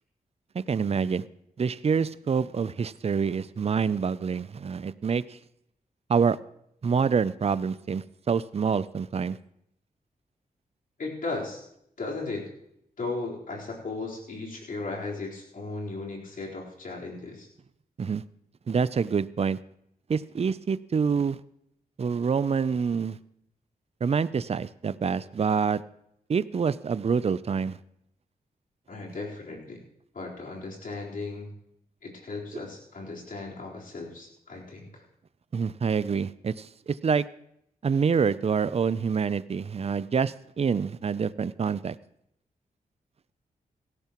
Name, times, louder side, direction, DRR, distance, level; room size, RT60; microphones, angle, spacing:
voice 1, 0.5-1.2 1.6-5.4 6.1-6.4 6.8-9.4 18.0-18.2 18.7-19.6 20.1-21.4 22.0-23.2 24.0-25.8 26.3-27.8 35.5-37.2 37.8-42.0, right 6 dB, 40° right, 17 dB, 0.5 m, -26 dB
voice 2, 11.0-11.6 12.0-12.4 13.0-17.5 28.9-29.8 30.1-31.5 32.0-35.0, left 3 dB, 65° left, -3 dB, 4.1 m, -36 dB
17.0 x 14.0 x 3.0 m, 0.74 s
cardioid pair, 65°, 16 cm